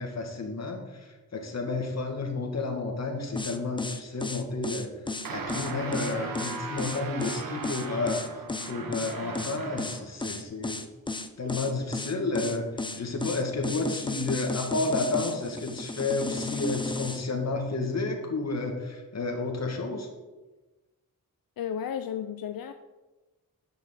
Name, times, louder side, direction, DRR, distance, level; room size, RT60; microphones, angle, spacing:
voice 1, 0.0-4.9 5.3-8.2 8.7-10.8 11.4-12.7 13.0-20.1, left 3 dB, 50° left, 3 dB, 2.2 m, -31 dB
sound 1, 3.4-17.2, left 3 dB, 15° left, 0.7 m, -34 dB
sound 2, 5.2-10.1, right 4 dB, 85° right, 1.5 m, -38 dB
voice 2, 21.6-22.7, left 8 dB, 80° left, 8 dB, 0.6 m, -33 dB
10.0 x 6.7 x 7.6 m, 1.2 s
wide cardioid pair, 155°, 34 cm